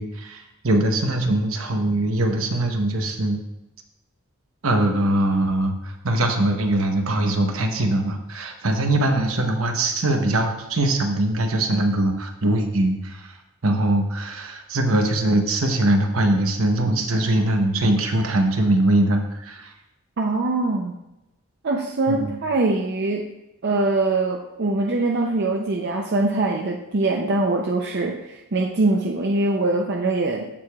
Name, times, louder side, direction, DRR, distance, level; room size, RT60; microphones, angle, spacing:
voice 1, 0.0-3.4 4.6-13.4 13.6-19.7 22.1-22.4, right 1 dB, 70° right, 4 dB, 0.9 m, -22 dB
voice 2, 20.2-20.9 21.6-23.3 23.6-30.5, right 2 dB, 50° right, 1 dB, 0.5 m, -23 dB
14.0 x 4.8 x 2.3 m, 0.95 s
head